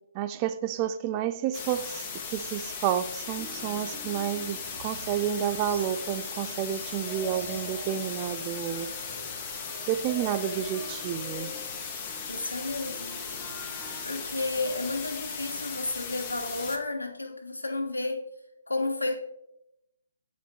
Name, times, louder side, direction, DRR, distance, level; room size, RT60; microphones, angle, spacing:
voice 1, 0.1-8.9 9.9-11.5, right 10 dB, 25° right, 0.3 m, -30 dB
sound 1, 1.5-16.8, left 5 dB, 25° left, 1.0 m, -37 dB
sound 2, 3.4-14.0, left 1 dB, 5° right, 0.7 m, -47 dB
sound 3, 5.7-10.8, right 1 dB, 85° right, 1.5 m, -48 dB
voice 2, 12.3-13.2 14.0-18.2 18.7-19.1, left 2 dB, 85° left, 1.3 m, -32 dB
8.3 x 5.1 x 2.9 m
figure-of-eight pair, 135°, 0 cm